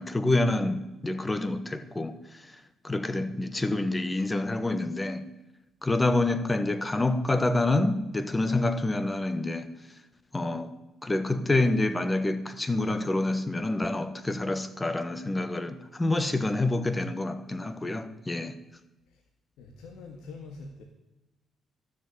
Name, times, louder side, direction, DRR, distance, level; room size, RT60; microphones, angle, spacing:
voice 1, 0.0-5.3 5.8-9.7 10.3-10.7 11.0-18.6, left 2 dB, 15° left, 1.3 m, -27 dB
voice 2, 19.6-20.8, left 3 dB, 85° left, 1.7 m, -44 dB
13.0 x 7.3 x 9.6 m
cardioid pair, 90°, 0 cm